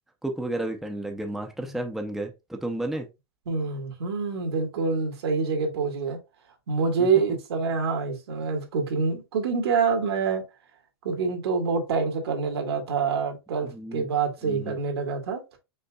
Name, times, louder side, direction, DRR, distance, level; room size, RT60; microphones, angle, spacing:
voice 1, 0.2-3.1 7.0-7.1 13.7-14.1 14.4-14.8, right 1 dB, ahead, 0.5 m, -32 dB
voice 2, 3.5-6.2 6.7-10.4 11.0-15.4, right 5 dB, 85° right, 1.8 m, -26 dB
5.4 x 3.6 x 2.3 m
supercardioid pair, 145°, 13 cm